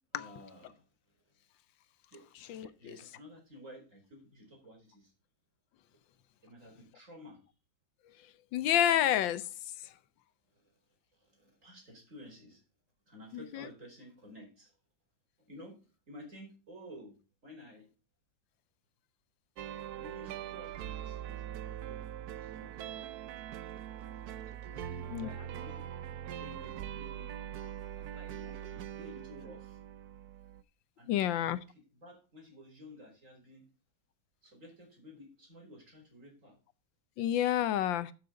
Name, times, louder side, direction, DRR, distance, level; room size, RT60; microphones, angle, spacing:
voice 1, 0.1-0.8 2.1-2.3 2.6-5.1 6.4-7.4 10.5-10.6 11.2-12.6 13.1-14.7 15.4-17.2 17.4-17.9 19.9-22.0 22.4-23.1 24.7-25.9 26.3-27.3 27.9-29.8 31.0-33.7 34.4-36.6, equal, 40° right, 0 dB, 4.9 m, -53 dB
voice 2, 8.5-9.5 13.3-13.6 25.1-25.3 31.1-31.6 37.2-38.1, left 11 dB, 75° left, 15 dB, 1.4 m, -29 dB
sound 1, 19.6-30.6, right 10 dB, 65° right, 1.0 m, -42 dB
12.0 x 6.7 x 3.7 m, 0.34 s
omnidirectional pair, 2.2 m